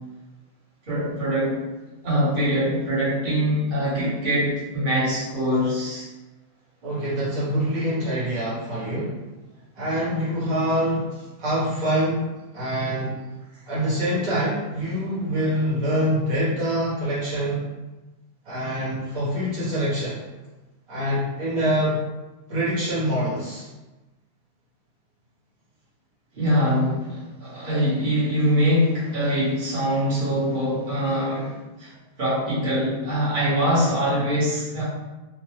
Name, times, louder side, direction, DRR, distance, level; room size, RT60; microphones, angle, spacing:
voice 1, 0.9-1.6 2.0-6.1 13.5-13.6 26.3-31.9 32.2-34.8, equal, 35° right, -10 dB, 1.2 m, -23 dB
voice 2, 6.8-9.2 9.7-11.1 11.4-12.3 12.5-13.2 13.7-17.6 18.4-20.2 20.9-22.0 22.5-23.7, equal, 60° right, -9 dB, 1.5 m, -25 dB
3.2 x 2.2 x 3.0 m, 1.1 s
omnidirectional pair, 1.6 m